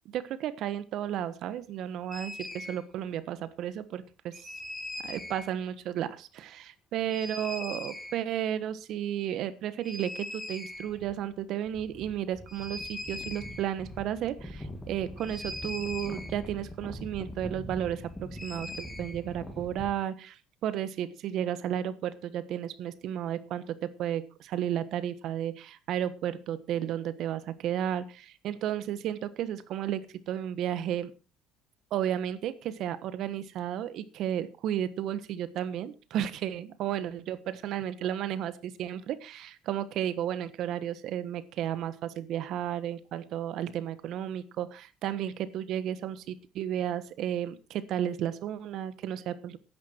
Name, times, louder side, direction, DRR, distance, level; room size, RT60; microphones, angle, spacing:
voice 1, 0.1-2.3 2.6-4.3 5.0-30.0 30.3-31.1 31.9-49.6, right 10 dB, 55° right, 15 dB, 1.4 m, -33 dB
sound 1, 2.1-2.8 4.3-5.5 7.1-8.2 9.8-11.1 11.4-11.5 11.7-19.9, left 1 dB, 10° left, 2.4 m, -41 dB
15.5 x 11.0 x 4.6 m, 0.32 s
cardioid pair, 155°, 0 cm